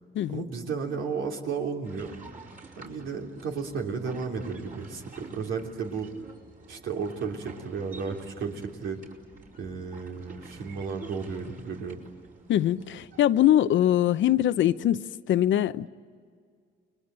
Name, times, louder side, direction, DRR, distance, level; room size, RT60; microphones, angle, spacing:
voice 1, 0.3-2.2 2.8-6.1 6.7-9.0 9.6-12.0, right 5 dB, 80° right, 3.3 m, -33 dB
sound 1, 1.8-13.2, right 3 dB, 45° right, 4.8 m, -49 dB
voice 2, 12.5-15.9, left 12 dB, 70° left, 0.7 m, -23 dB
29.5 x 22.0 x 9.1 m
cardioid pair, 90°, 20 cm